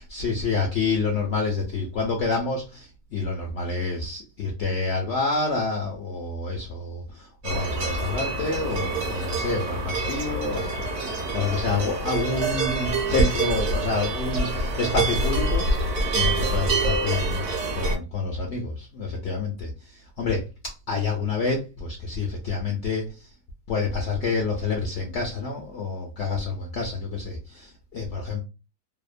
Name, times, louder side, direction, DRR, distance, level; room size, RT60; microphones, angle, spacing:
voice 1, 0.1-17.5 17.7-23.3 23.7-28.4, left 3 dB, 70° left, 0.7 m, -28 dB
sound 1, 7.4-18.0, right 2 dB, 60° right, 1.0 m, -26 dB
2.8 x 2.0 x 2.4 m
omnidirectional pair, 1.7 m